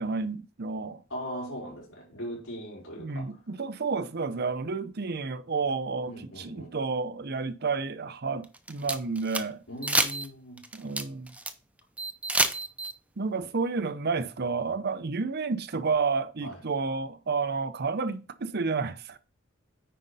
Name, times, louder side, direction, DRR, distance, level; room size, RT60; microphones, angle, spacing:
voice 1, 0.0-1.0 3.0-6.1 6.4-9.6 10.7-11.3 13.2-19.2, right 4 dB, 55° right, 0.7 m, -30 dB
voice 2, 1.1-3.4 6.0-6.8 9.7-10.6 16.4-16.6, equal, 85° left, 4.8 m, -39 dB
sound 1, 8.4-9.4 9.8-10.3 10.6-11.5 12.0-12.9, right 2 dB, 5° right, 0.6 m, -28 dB
9.3 x 5.1 x 4.1 m
head